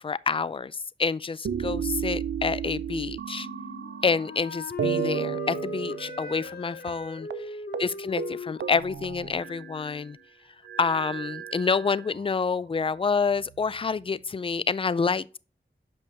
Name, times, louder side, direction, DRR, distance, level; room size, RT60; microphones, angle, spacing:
voice 1, 0.0-3.5 4.0-10.2 10.8-15.4, left 5 dB, 30° left, 0.3 m, -28 dB
sound 1, 1.4-4.4 4.8-6.6 6.9-7.0 7.3-7.5 7.7-7.9 8.2-9.9 10.6-12.2 12.9-13.9, right 8 dB, 70° right, 0.4 m, -34 dB
Wind instrument woodwind instrument, 3.4-10.2, left 3 dB, 55° left, 0.8 m, -39 dB
6.8 x 5.3 x 3.3 m
wide cardioid pair, 55°, 19 cm